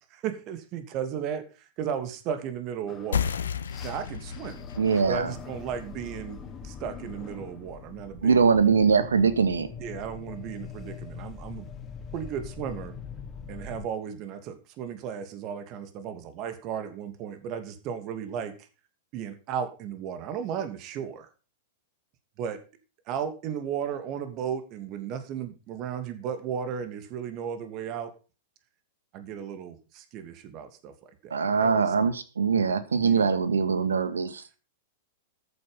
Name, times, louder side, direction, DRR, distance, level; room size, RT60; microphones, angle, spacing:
voice 1, 0.1-3.3 3.8-4.6 5.1-8.4 9.8-11.7 12.1-12.9 13.5-18.7 19.1-21.3 22.4-22.6 23.1-28.1 29.1-31.9 33.0-33.3, right 8 dB, 40° right, 9 dB, 2.7 m, -35 dB
sound 1, 2.9-13.8, left 6 dB, 25° left, 2.6 m, -43 dB
sound 2, 3.1-8.2, left 8 dB, 70° left, 1.1 m, -35 dB
voice 2, 4.8-5.3 8.2-9.7 31.3-34.6, right 5 dB, 75° right, 13 dB, 1.8 m, -22 dB
14.0 x 8.9 x 5.7 m, 0.34 s
figure-of-eight pair, 100°, 0 cm